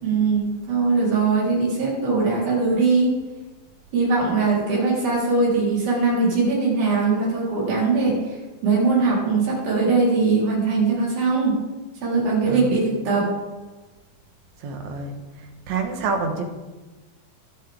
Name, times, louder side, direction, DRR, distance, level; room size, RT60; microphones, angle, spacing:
voice 1, 0.0-3.2 3.9-8.4 8.6-11.6 12.0-13.3, right 4 dB, 85° right, -5 dB, 5.7 m, -21 dB
voice 2, 14.6-15.2 15.7-16.4, right 4 dB, 60° right, 4 dB, 2.3 m, -27 dB
22.0 x 7.4 x 3.6 m, 1.2 s
omnidirectional pair, 4.1 m